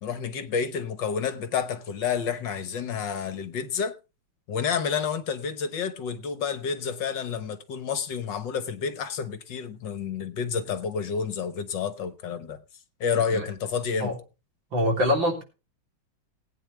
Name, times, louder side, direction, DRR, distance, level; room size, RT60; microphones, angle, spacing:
voice 1, 0.0-3.9 4.5-12.6 13.0-14.1, left 6 dB, 65° left, 1.7 m, -29 dB
voice 2, 14.7-15.4, left 1 dB, 65° right, 4.2 m, -24 dB
19.5 x 9.2 x 3.3 m
omnidirectional pair, 2.3 m